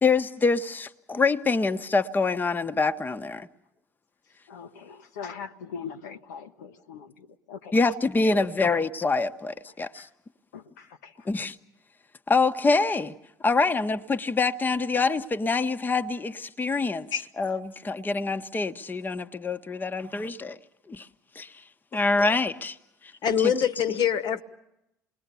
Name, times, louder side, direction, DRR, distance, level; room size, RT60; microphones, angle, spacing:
voice 1, 0.0-3.5 7.7-10.1 11.3-11.6 12.3-13.1 13.4-17.1 17.4-20.6 20.9-21.1 21.3-21.6 21.9-22.8 23.4-23.5, left 3 dB, 20° left, 1.0 m, -25 dB
voice 2, 4.5-7.7 9.9-10.1 10.5-11.3, left 6 dB, 75° left, 0.9 m, -41 dB
voice 3, 23.2-24.4, left 8 dB, 50° left, 1.3 m, -24 dB
28.5 x 21.0 x 6.9 m
figure-of-eight pair, 60°, 9 cm